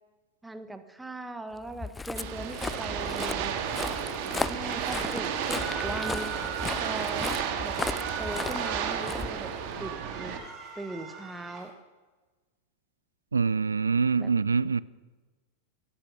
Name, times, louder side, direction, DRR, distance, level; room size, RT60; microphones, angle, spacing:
voice 1, 0.4-3.5 4.2-6.3 6.8-7.3 7.6-7.8 8.2-9.5 9.8-10.4 10.7-11.7 14.2-14.3, right 2 dB, 5° right, 1.4 m, -39 dB
Walk footsteps, 1.6-9.9, left 3 dB, 10° left, 0.4 m, -36 dB
sound 1, 2.2-10.4, right 8 dB, 45° right, 2.0 m, -33 dB
sound 2, 5.3-7.0 7.7-9.0 9.4-11.7, right 5 dB, 25° right, 4.2 m, -41 dB
voice 2, 13.3-14.8, right 5 dB, 75° right, 0.5 m, -25 dB
18.5 x 14.0 x 5.5 m
figure-of-eight pair, 90°, 0 cm